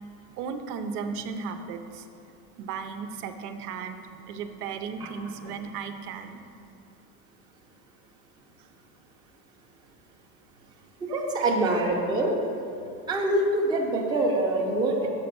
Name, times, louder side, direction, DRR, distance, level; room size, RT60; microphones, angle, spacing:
voice 1, 0.4-2.1 2.6-6.4 11.1-11.2, right 5 dB, 80° right, 7 dB, 0.8 m, -35 dB
voice 2, 11.1-12.3 13.1-15.1, right 2 dB, 10° right, -2 dB, 0.6 m, -24 dB
6.9 x 5.2 x 6.0 m, 2.6 s
supercardioid pair, 150°, 44 cm